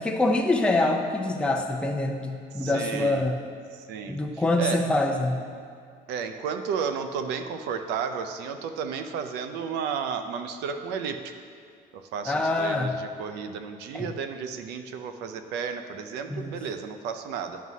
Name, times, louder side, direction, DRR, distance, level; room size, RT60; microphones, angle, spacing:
voice 1, 0.0-3.4 4.1-5.4 12.3-12.9 13.9-14.1 16.3-16.5, left 2 dB, 5° left, 1 dB, 0.5 m, -25 dB
voice 2, 2.6-3.3 3.7-4.2 4.6-4.9 6.1-11.3 11.9-17.6, right 6 dB, 90° right, 8 dB, 0.5 m, -33 dB
9.3 x 6.0 x 2.7 m, 2.2 s
cardioid pair, 110°, 17 cm